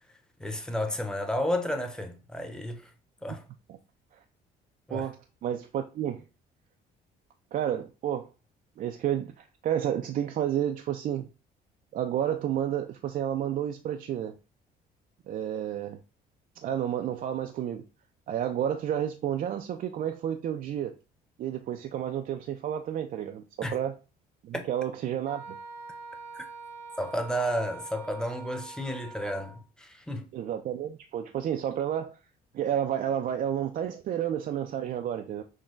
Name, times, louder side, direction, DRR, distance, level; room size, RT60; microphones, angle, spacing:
voice 1, 0.4-2.8 3.2-3.4 4.9-5.1 23.6-23.8 24.5-24.7 26.3-26.4 27.0-30.2, equal, 5° left, 0.9 m, -32 dB
voice 2, 5.4-6.2 7.5-8.3 8.8-11.3 11.9-14.3 15.3-16.0 16.6-17.8 18.3-20.9 21.4-24.0 24.4-25.6 30.3-32.2 32.5-35.4, right 10 dB, 55° right, 0.5 m, -31 dB
Wind instrument woodwind instrument, 25.2-29.6, right 4 dB, 85° right, 1.0 m, -44 dB
6.2 x 2.2 x 3.8 m
cardioid pair, 110°, 17 cm